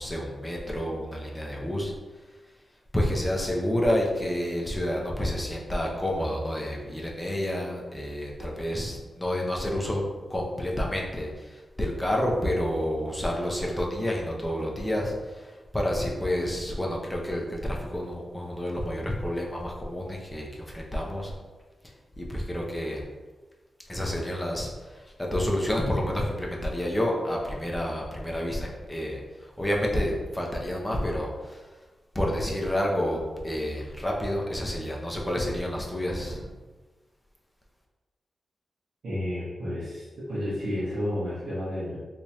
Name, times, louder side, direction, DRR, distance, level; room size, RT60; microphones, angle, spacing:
voice 1, 0.0-1.9 2.3-2.4 2.9-10.0 10.3-21.3 22.2-23.0 23.9-31.7 32.1-36.5, left 1 dB, 10° left, -2 dB, 0.5 m, -29 dB
voice 2, 39.0-42.0, left 1 dB, 75° right, -12 dB, 1.2 m, -31 dB
3.4 x 3.1 x 2.8 m, 1.3 s
wide cardioid pair, 175°, 0 cm